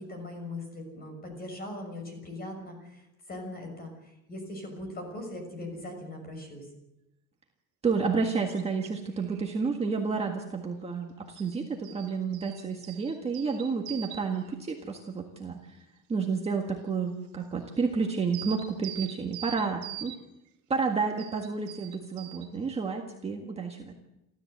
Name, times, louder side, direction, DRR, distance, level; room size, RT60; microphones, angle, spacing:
voice 1, 0.0-6.7, left 1 dB, 25° left, 5 dB, 6.4 m, -40 dB
voice 2, 7.8-15.6 16.1-20.1 20.7-23.9, right 5 dB, 15° right, 1 dB, 1.7 m, -30 dB
sound 1, 8.5-8.9 9.1-9.7 11.3-14.6 17.8-17.9 18.3-20.2 21.2-22.5, right 12 dB, 55° right, 2.7 m, -43 dB
29.0 x 13.5 x 8.0 m, 0.90 s
cardioid pair, 180°, 35 cm